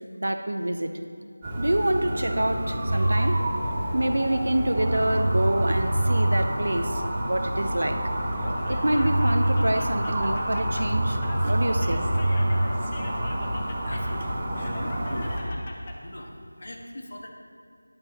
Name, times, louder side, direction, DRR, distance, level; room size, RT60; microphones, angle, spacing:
voice 1, 0.2-0.9 1.6-3.4 3.9-8.0 8.7-11.2 11.4-12.0, right 1 dB, 70° right, 7 dB, 0.8 m, -26 dB
sound 1, 1.4-15.4, equal, 10° right, 0.9 m, -29 dB
sound 2, 2.9-3.4 4.4-4.5 4.8-6.4 8.7-8.8 9.0-9.7 10.9-12.7, right 1 dB, 40° right, 0.7 m, -25 dB
Laughter, 8.3-16.0, left 2 dB, 20° left, 0.7 m, -42 dB
voice 2, 13.8-15.5 16.0-17.3, left 1 dB, 55° left, 1 dB, 1.5 m, -40 dB
13.0 x 10.5 x 3.0 m, 2.2 s
figure-of-eight pair, 175°, 0 cm